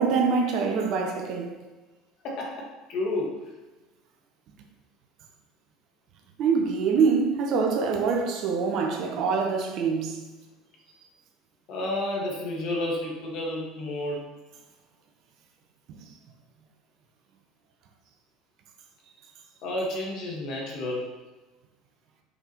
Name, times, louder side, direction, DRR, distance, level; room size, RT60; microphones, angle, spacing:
voice 1, 0.0-1.6 6.4-10.2 16.0-16.1, right 5 dB, 55° right, 1.0 m, -25 dB
voice 2, 2.2-3.4 11.7-14.3 19.6-21.1, left 1 dB, 55° left, 1.8 m, -31 dB
5.5 x 5.3 x 3.2 m
hypercardioid pair, 70°, 0 cm